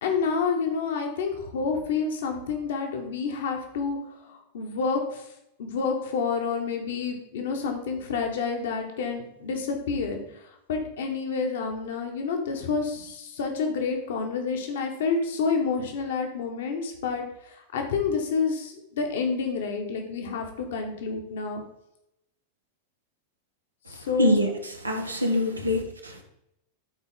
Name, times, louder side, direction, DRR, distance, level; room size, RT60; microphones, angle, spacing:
voice 1, 0.0-4.0 4.3-5.2 5.6-10.2 10.7-17.2 17.7-21.6 23.9-24.4 25.6-25.7, left 5 dB, 60° left, 3 dB, 1.6 m, -28 dB
voice 2, 24.2-24.5 24.8-26.2, left 1 dB, 80° right, 3 dB, 1.3 m, -24 dB
13.0 x 4.4 x 3.9 m, 0.83 s
figure-of-eight pair, 90°, 0 cm